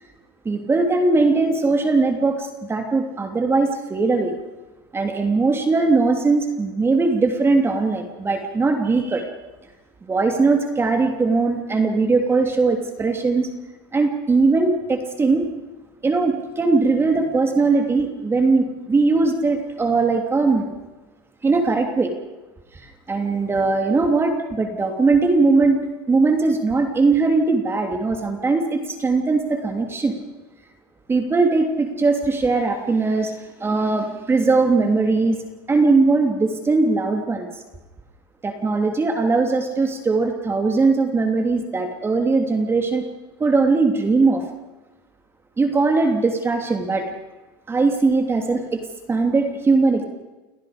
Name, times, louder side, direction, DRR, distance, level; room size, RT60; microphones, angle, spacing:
voice 1, 0.4-4.3 4.9-9.3 10.1-13.5 13.9-15.5 16.0-20.7 21.4-22.1 22.7-22.8 23.1-25.8 26.1-30.1 31.1-35.4 35.7-37.5 38.4-43.0 43.4-44.4 45.6-47.1 47.7-48.8 49.1-50.0, right 3 dB, 20° right, 4 dB, 3.0 m, -20 dB
29.5 x 18.0 x 5.2 m, 1.1 s
supercardioid pair, 110°, 13 cm